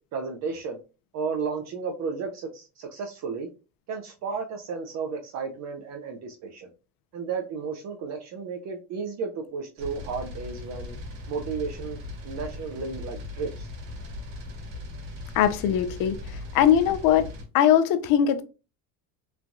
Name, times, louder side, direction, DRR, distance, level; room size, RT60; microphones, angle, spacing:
voice 1, 0.1-0.8 1.1-3.5 3.9-6.7 7.1-11.0 11.3-12.0 12.2-13.7, right 5 dB, 45° right, 0.5 m, -33 dB
sound 1, 9.8-17.4, left 2 dB, 65° right, 1.3 m, -39 dB
voice 2, 15.3-17.3 17.5-18.4, left 9 dB, 60° left, 0.5 m, -21 dB
3.1 x 2.2 x 2.6 m
cardioid pair, 125°, 38 cm